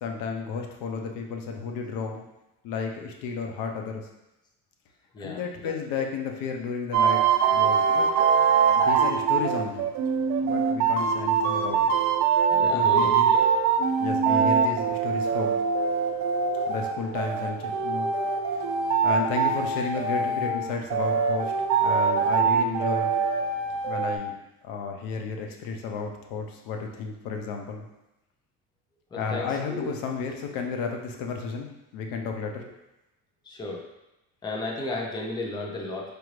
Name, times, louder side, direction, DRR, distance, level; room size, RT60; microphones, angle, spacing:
voice 1, 0.0-2.2 2.6-4.1 5.2-8.1 8.7-9.9 10.4-11.9 12.6-13.3 14.0-15.6 16.7-18.1 19.0-21.5 21.8-23.1 23.8-24.4 24.6-27.9 29.1-32.7, left 5 dB, 90° left, 3 dB, 0.7 m, -32 dB
voice 2, 5.1-5.7 7.9-8.0 10.4-10.5 12.5-13.4 29.1-29.9 32.6-32.7 33.4-33.9 34.4-36.1, left 2 dB, 15° left, -1 dB, 0.4 m, -34 dB
sound 1, 6.9-24.2, right 6 dB, 55° right, 0.5 m, -23 dB
4.7 x 2.5 x 3.1 m, 0.94 s
cardioid pair, 150°, 33 cm